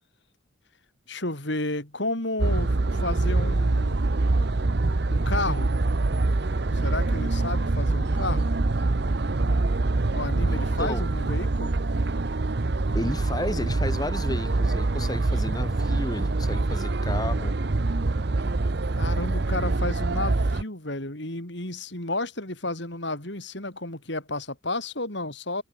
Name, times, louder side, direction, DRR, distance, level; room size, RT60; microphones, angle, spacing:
voice 1, 1.1-4.1 5.1-5.7 6.7-8.5 10.1-11.8 19.0-25.6, left 2 dB, 55° left, 4.3 m, -32 dB
sound 1, 2.4-20.6, right 2 dB, 55° right, 0.8 m, -25 dB
voice 2, 10.5-11.1 12.9-17.6, left 1 dB, 20° left, 2.3 m, -33 dB
head